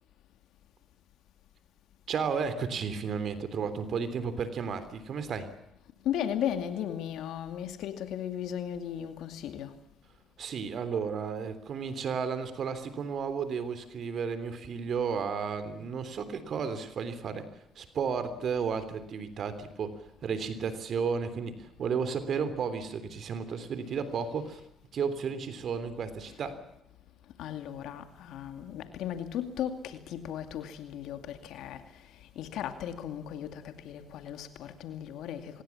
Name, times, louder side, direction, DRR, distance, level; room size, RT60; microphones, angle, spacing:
voice 1, 2.1-5.5 10.4-17.5 17.7-24.6 24.9-26.6, right 6 dB, 60° right, 3.3 m, -33 dB
voice 2, 6.0-9.7 27.4-31.8 32.4-35.6, left 10 dB, 75° left, 2.4 m, -36 dB
25.0 x 20.5 x 7.3 m
supercardioid pair, 65°, 0 cm